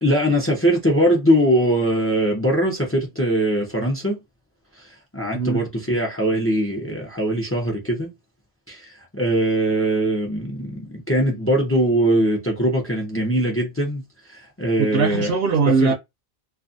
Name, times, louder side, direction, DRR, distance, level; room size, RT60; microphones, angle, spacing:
voice 1, 0.0-4.2 4.7-8.1 8.7-14.0 14.3-15.3 15.8-15.9, right 1 dB, 15° left, 0.5 m, -21 dB
voice 2, 14.8-15.9, right 5 dB, 70° right, 0.8 m, -20 dB
2.4 x 2.4 x 2.6 m
omnidirectional pair, 1.1 m